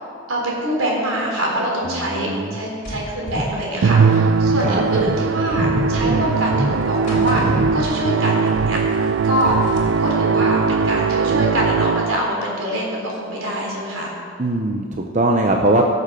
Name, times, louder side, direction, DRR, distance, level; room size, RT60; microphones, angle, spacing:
voice 1, 0.3-8.8 9.2-9.5 10.0-14.1, right 1 dB, 75° right, -2 dB, 3.7 m, -24 dB
voice 2, 1.8-2.6 4.6-4.8 9.4-9.6 14.4-15.9, right 2 dB, 35° right, 2 dB, 0.7 m, -20 dB
sound 1, 2.8-8.3 8.5-10.1, equal, 40° left, 2.6 m, -28 dB
Musical instrument, 3.8-12.3, right 5 dB, 55° right, 0.3 m, -19 dB
16.5 x 6.8 x 6.3 m, 2.3 s
head